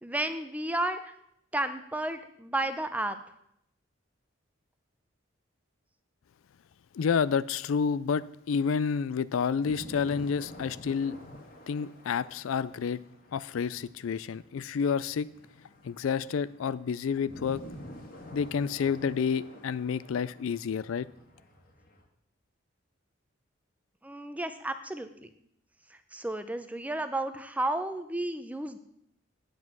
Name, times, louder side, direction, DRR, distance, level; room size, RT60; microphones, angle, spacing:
voice 1, 0.0-1.1 1.5-3.2 24.0-25.3 26.1-28.8, right 1 dB, 5° right, 9 dB, 0.6 m, -32 dB
voice 2, 6.9-11.2 11.7-13.0 13.3-15.3 15.8-17.6 18.3-21.1, left 6 dB, 85° left, 17 dB, 0.4 m, -29 dB
sound 1, 9.6-22.0, left 1 dB, 45° left, 1.7 m, -49 dB
9.6 x 8.0 x 6.0 m, 0.74 s
head